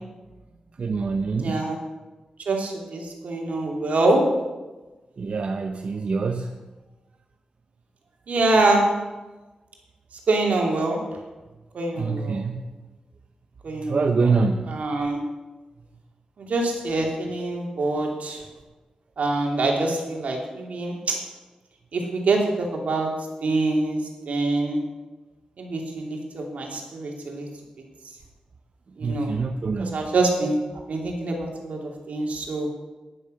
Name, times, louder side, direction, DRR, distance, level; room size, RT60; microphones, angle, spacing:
voice 1, 0.8-1.7 5.2-6.5 12.0-12.6 13.8-14.7 29.0-30.1, right 4 dB, 60° right, 5 dB, 0.8 m, -25 dB
voice 2, 1.4-1.8 2.5-4.2 8.3-8.9 10.3-11.0 11.7-12.4 13.6-14.3 14.7-15.2 16.4-18.4 19.2-21.2 21.9-23.1 23.4-24.8 25.6-27.5 29.0-29.3 29.8-30.6 30.9-31.8 32.1-32.7, right 2 dB, 80° right, 1 dB, 2.8 m, -25 dB
11.0 x 10.5 x 6.4 m, 1.2 s
wide cardioid pair, 105°, 2 cm